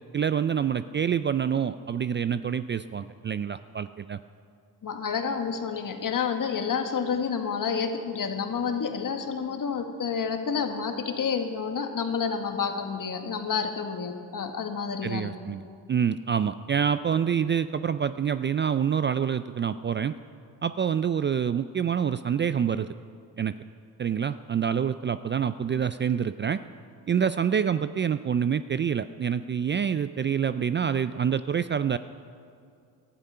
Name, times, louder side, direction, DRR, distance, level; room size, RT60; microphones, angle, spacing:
voice 1, 0.1-4.2 15.0-20.2 20.6-22.9 23.4-23.5 24.0-26.6 27.1-32.0, right 8 dB, 30° right, 13 dB, 0.4 m, -27 dB
voice 2, 4.8-15.3, left 6 dB, 50° left, 6 dB, 1.8 m, -29 dB
19.0 x 11.5 x 5.6 m, 2.4 s
supercardioid pair, 65°, 42 cm